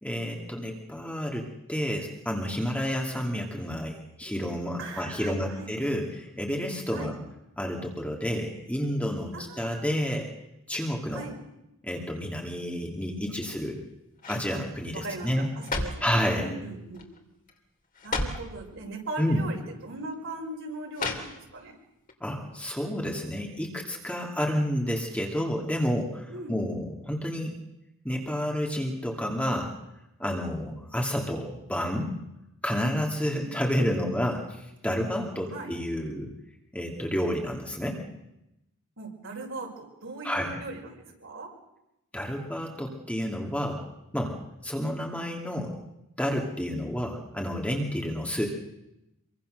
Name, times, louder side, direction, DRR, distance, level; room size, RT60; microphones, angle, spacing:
voice 1, 0.0-7.1 7.6-10.3 10.7-11.2 11.8-13.8 14.3-15.5 16.0-16.5 19.2-19.4 22.2-27.6 28.0-29.7 30.2-32.1 32.6-36.3 36.7-38.0 40.2-40.6 42.1-43.8 44.1-45.8 46.2-48.5, equal, 5° left, 0 dB, 2.4 m, -30 dB
voice 2, 4.8-5.7 6.9-7.1 9.3-10.0 11.1-11.3 14.5-14.6 14.9-15.3 15.6-17.0 18.0-21.7 26.3-26.6 33.3-33.5 35.5-35.7 39.0-41.5, right 2 dB, 65° right, 0 dB, 6.1 m, -39 dB
sound 1, 13.3-13.8 14.2-14.5 15.3-16.1 16.9-17.2 17.5-17.6 17.9-18.5 19.5-19.6 20.9-21.7 22.1-22.2, left 3 dB, 40° left, 3.1 m, -33 dB
26.0 x 23.5 x 6.5 m, 0.89 s
head